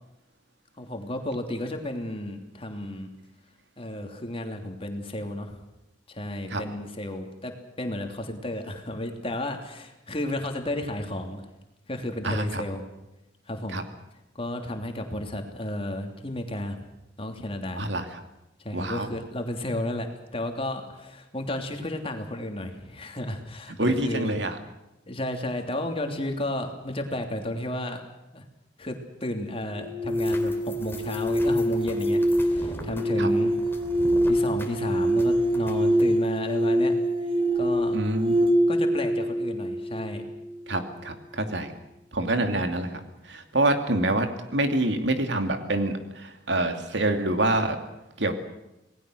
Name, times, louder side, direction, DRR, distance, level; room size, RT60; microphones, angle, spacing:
voice 1, 0.8-3.1 3.8-5.6 6.1-11.5 11.9-12.8 13.5-13.8 14.3-16.8 17.2-17.8 18.6-24.4 25.1-28.0 28.3-28.4 28.8-33.6 34.3-36.9 37.2-38.0 38.7-40.2, left 1 dB, 30° left, 4 dB, 3.1 m, -33 dB
voice 2, 12.2-12.6 13.7-13.8 17.8-18.1 18.7-19.1 23.8-24.6 33.2-33.3 37.9-38.6 40.7-41.7 42.1-44.3 44.5-47.8 48.2-48.3, right 1 dB, 75° right, 6 dB, 2.7 m, -26 dB
sound 1, 29.7-40.7, equal, 30° right, 1.8 m, -25 dB
sound 2, 30.1-36.0, left 1 dB, 15° left, 3.0 m, -42 dB
27.5 x 19.5 x 6.4 m, 0.94 s
head